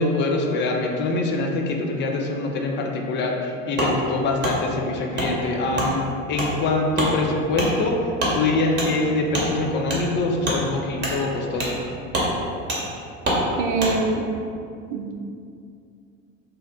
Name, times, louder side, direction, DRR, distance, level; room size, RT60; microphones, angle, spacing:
voice 1, 0.0-11.9, left 2 dB, 30° left, 1 dB, 0.3 m, -24 dB
Wood, 3.8-3.9 4.4-4.5 5.1-5.3 5.7-5.9 6.3-6.5 6.9-7.1 7.5-7.7 8.2-8.3 8.8-8.9 9.3-9.5 9.9-10.0 10.4-10.6 11.0-11.2 11.6-11.8 12.1-12.3 12.7-12.8 13.2-13.4 13.8-13.9, right 1 dB, 25° right, 0.9 m, -24 dB
voice 2, 13.6-14.2 14.9-15.1, right 3 dB, 50° right, 2 dB, 0.5 m, -24 dB
2.6 x 2.1 x 3.5 m, 2.5 s
hypercardioid pair, 75°, 39 cm